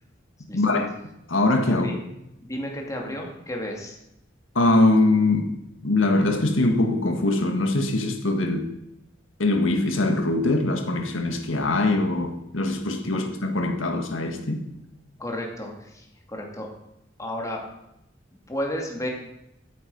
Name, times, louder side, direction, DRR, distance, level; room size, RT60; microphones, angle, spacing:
voice 1, 0.5-0.9 1.3-2.0 4.6-5.5 5.8-8.7 9.4-14.6, left 2 dB, 80° left, 6 dB, 1.7 m, -22 dB
voice 2, 1.7-2.0 2.4-4.0 15.2-16.7 17.2-17.6 18.5-19.1, left 1 dB, 15° left, 0 dB, 2.4 m, -32 dB
13.5 x 8.4 x 5.5 m, 0.85 s
head